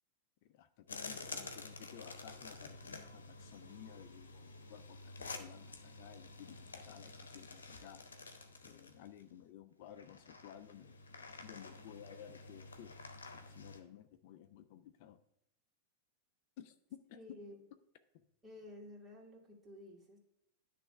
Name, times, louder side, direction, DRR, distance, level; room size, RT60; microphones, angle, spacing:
voice 1, 0.4-8.0 8.6-11.0 11.4-12.9 13.3-15.2 16.6-17.5, left 10 dB, 55° left, 10 dB, 0.5 m, -55 dB
sound 1, 0.9-9.2 10.0-13.8, left 3 dB, 85° left, 0.8 m, -50 dB
voice 2, 17.1-17.6 18.4-20.2, left 1 dB, 20° right, -1 dB, 2.3 m, -52 dB
10.0 x 3.3 x 5.6 m, 0.81 s
hypercardioid pair, 100°, 0 cm